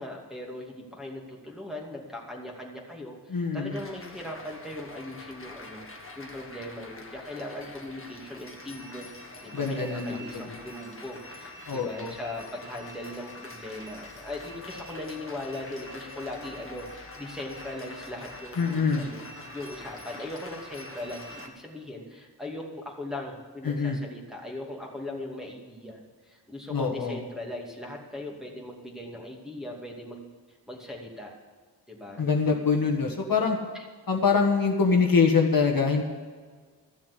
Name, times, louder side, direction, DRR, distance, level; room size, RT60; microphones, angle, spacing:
voice 1, 0.0-5.8 6.2-9.1 9.4-19.2 19.5-30.2 30.7-31.3 31.9-32.3, left 1 dB, ahead, -3 dB, 2.5 m, -39 dB
voice 2, 3.3-3.7 9.5-10.5 11.7-12.1 18.6-19.1 23.6-24.0 26.7-27.2 32.2-33.6 34.1-36.0, left 5 dB, 55° left, 1 dB, 1.5 m, -24 dB
sound 1, 3.7-21.5, left 2 dB, 30° left, 1.7 m, -44 dB
13.5 x 7.2 x 8.3 m, 1.5 s
wide cardioid pair, 85°, 42 cm